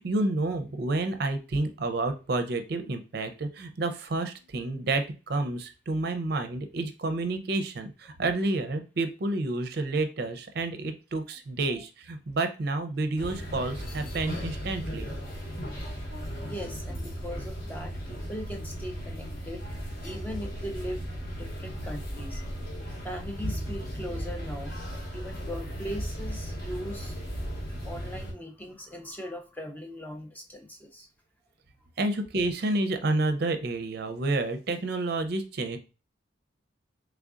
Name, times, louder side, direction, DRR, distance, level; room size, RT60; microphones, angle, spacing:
voice 1, 0.0-15.1 27.6-27.8 32.0-35.8, right 2 dB, 55° right, 8 dB, 0.5 m, -29 dB
sound 1, 13.2-28.3, equal, 50° left, 1.0 m, -36 dB
voice 2, 16.4-19.6 20.0-22.4 23.0-24.7 25.1-27.2 27.8-31.1, equal, 10° left, 2 dB, 0.5 m, -39 dB
3.7 x 3.3 x 2.4 m, 0.31 s
head